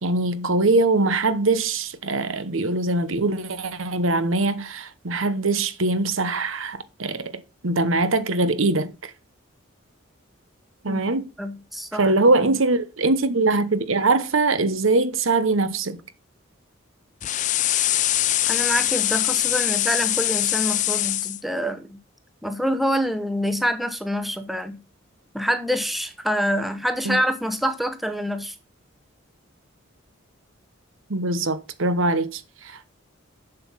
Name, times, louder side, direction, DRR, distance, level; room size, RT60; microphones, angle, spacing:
voice 1, 0.0-9.1 10.8-11.3 11.9-16.0 27.0-27.2 31.1-33.0, right 2 dB, 75° right, 1.1 m, -22 dB
voice 2, 11.4-12.1 18.5-22.0 22.4-24.8 25.3-28.5, equal, ahead, 0.8 m, -26 dB
sound 1, 17.2-21.4, left 14 dB, 35° left, 0.4 m, -23 dB
7.6 x 6.9 x 5.6 m
head